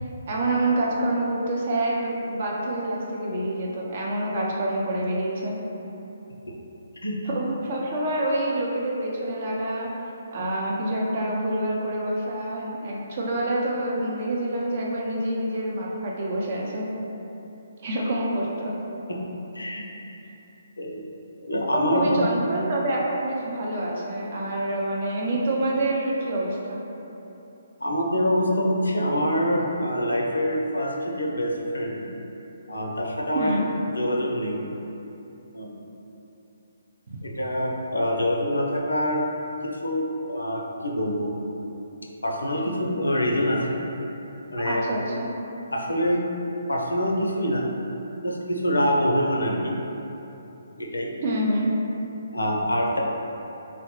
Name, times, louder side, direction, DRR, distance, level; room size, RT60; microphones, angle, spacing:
voice 1, 0.3-5.6 7.2-9.9 10.3-16.8 17.8-18.7 21.7-26.8 33.3-33.6 37.1-37.2 44.6-45.3 51.2-51.7, right 1 dB, 50° right, -3 dB, 0.6 m, -27 dB
voice 2, 19.5-20.2 20.8-21.0 21.4-22.2 27.8-32.0 32.7-33.5 34.0-34.7 35.5-35.7 37.2-39.3 39.8-41.3 42.2-43.8 44.5-44.9 45.7-46.2 46.7-47.7 48.2-49.8 50.8-51.2 52.3-53.0, equal, 85° left, 0 dB, 0.4 m, -25 dB
3.9 x 2.0 x 3.0 m, 3.0 s
figure-of-eight pair, 140°, 0 cm